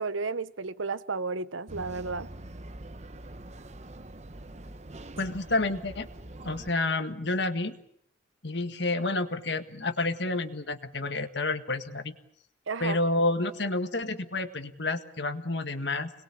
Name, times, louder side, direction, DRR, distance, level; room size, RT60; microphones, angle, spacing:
voice 1, 0.0-2.3 12.7-13.0, right 4 dB, 80° right, 1.0 m, -32 dB
sound 1, 1.7-6.7, right 1 dB, 35° right, 1.0 m, -44 dB
voice 2, 5.2-6.1 6.4-7.8 8.4-12.1 12.8-16.1, left 2 dB, 60° left, 1.7 m, -29 dB
26.5 x 21.0 x 8.5 m
head